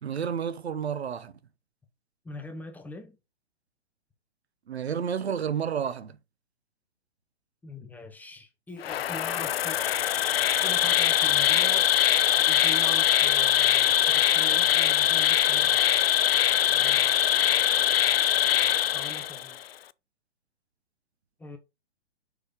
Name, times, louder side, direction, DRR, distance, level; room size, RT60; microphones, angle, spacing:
voice 1, 0.0-1.3 4.7-6.2, right 7 dB, 70° right, 0.9 m, -30 dB
voice 2, 2.2-3.2 7.6-9.8 10.6-11.9 12.3-16.0 16.7-17.3 18.9-19.6 21.4-21.6, left 2 dB, 5° left, 0.8 m, -43 dB
Insect, 8.8-19.6, left 11 dB, 60° left, 0.5 m, -22 dB
5.6 x 4.8 x 5.1 m
figure-of-eight pair, 120°, 33 cm